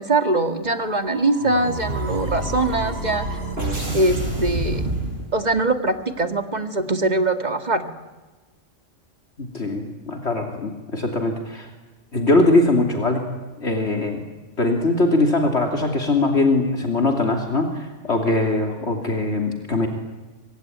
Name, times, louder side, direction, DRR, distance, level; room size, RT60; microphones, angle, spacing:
voice 1, 0.0-3.3 3.9-4.8 5.3-7.8, right 2 dB, 35° right, 7 dB, 2.2 m, -22 dB
sound 1, 0.6-5.7, right 2 dB, 55° right, 6.0 m, -28 dB
voice 2, 9.4-11.7 12.1-13.3 13.6-14.2 14.6-19.9, left 2 dB, 60° left, 3 dB, 3.3 m, -21 dB
25.5 x 24.5 x 9.5 m, 1.2 s
omnidirectional pair, 1.3 m